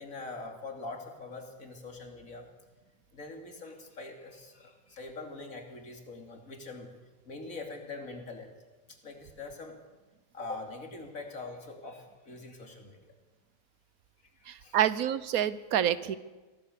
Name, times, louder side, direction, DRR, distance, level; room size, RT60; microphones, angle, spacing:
voice 1, 0.0-2.5 3.1-6.9 7.2-8.5 9.0-9.8 10.3-13.1 14.6-14.8, left 3 dB, 70° left, 3 dB, 3.2 m, -43 dB
voice 2, 14.5-16.2, right 10 dB, 85° right, 16 dB, 1.3 m, -28 dB
23.5 x 17.0 x 6.8 m, 1.2 s
omnidirectional pair, 1.5 m